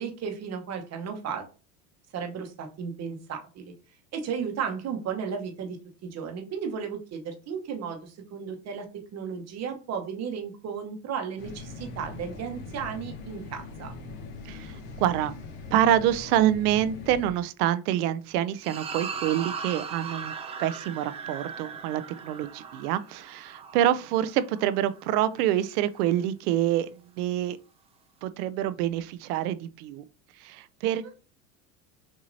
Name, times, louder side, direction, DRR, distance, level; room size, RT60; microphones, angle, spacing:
voice 1, 0.0-1.4 2.1-3.7 4.1-8.9 9.1-13.9, right 6 dB, 35° right, 1.0 m, -34 dB
sound 1, 11.4-17.3, left 3 dB, 55° left, 1.4 m, -41 dB
voice 2, 14.4-15.3 15.7-20.3 20.6-27.6 28.2-30.0 30.4-31.1, right 12 dB, 70° right, 0.6 m, -26 dB
sound 2, 18.6-25.2, right 6 dB, 15° right, 0.3 m, -38 dB
6.1 x 2.8 x 2.7 m
supercardioid pair, 120°, 47 cm